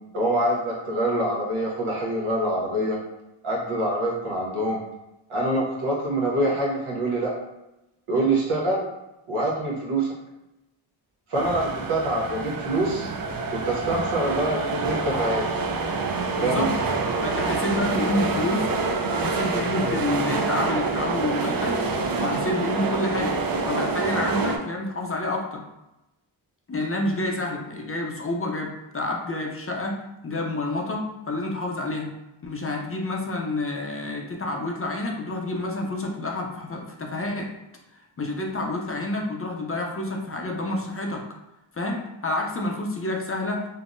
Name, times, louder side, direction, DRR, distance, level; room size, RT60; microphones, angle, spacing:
voice 1, 0.1-3.0 3.4-4.8 5.3-7.3 8.1-8.9 9.3-10.1 11.3-13.1 13.5-15.4 16.4-16.6, right 1 dB, 80° right, -4 dB, 1.0 m, -25 dB
sound 1, 11.3-24.6, right 3 dB, 50° right, 0.5 m, -27 dB
voice 2, 16.4-16.7 17.2-21.8 22.2-23.4 23.7-25.6 26.7-30.0 30.2-32.1 32.4-37.5 38.2-41.2 41.7-43.7, left 2 dB, 30° left, 0 dB, 0.5 m, -28 dB
3.6 x 2.0 x 2.5 m, 0.95 s
cardioid pair, 55°, 49 cm